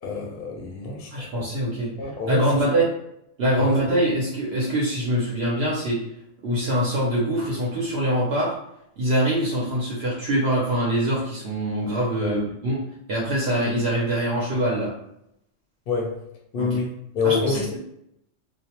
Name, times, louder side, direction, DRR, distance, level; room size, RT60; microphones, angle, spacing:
voice 1, 0.0-1.5 2.0-2.6 3.6-3.8 12.2-12.4 15.9-16.2 16.5-17.6, left 5 dB, 60° left, 0 dB, 0.6 m, -27 dB
voice 2, 1.1-1.9 2.3-2.9 3.4-6.0 6.4-8.5 9.0-12.8 13.1-14.9 16.6-16.8 17.2-17.8, right 1 dB, 60° right, -5 dB, 0.8 m, -24 dB
2.4 x 2.1 x 2.8 m, 0.78 s
omnidirectional pair, 1.3 m